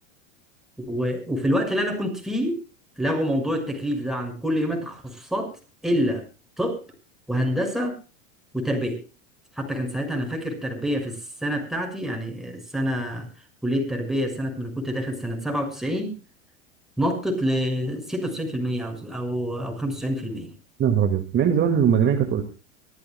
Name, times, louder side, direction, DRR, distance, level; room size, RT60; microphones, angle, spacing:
voice 1, 0.8-2.6 3.0-5.5 5.8-6.2 6.6-6.8 7.3-8.0 8.5-9.0 9.5-13.3 13.6-16.2 17.0-20.5, equal, ahead, 3 dB, 6.5 m, -27 dB
voice 2, 20.8-22.4, right 8 dB, 30° right, 5 dB, 2.4 m, -20 dB
24.5 x 14.5 x 2.4 m, 0.32 s
hypercardioid pair, 110°, 38 cm